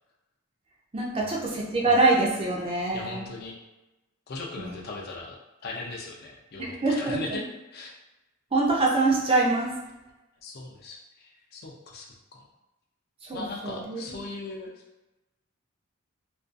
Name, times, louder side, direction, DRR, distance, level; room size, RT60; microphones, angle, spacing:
voice 1, 0.9-3.3 4.6-4.8 6.6-7.4 8.5-9.7 13.2-14.0, right 2 dB, 25° right, -3 dB, 0.4 m, -25 dB
voice 2, 2.9-3.6 4.3-5.4 5.6-7.4 7.7-7.9 10.4-12.5 13.3-14.8, left 3 dB, 45° left, 0 dB, 0.4 m, -39 dB
2.4 x 2.2 x 2.5 m, 1.0 s
head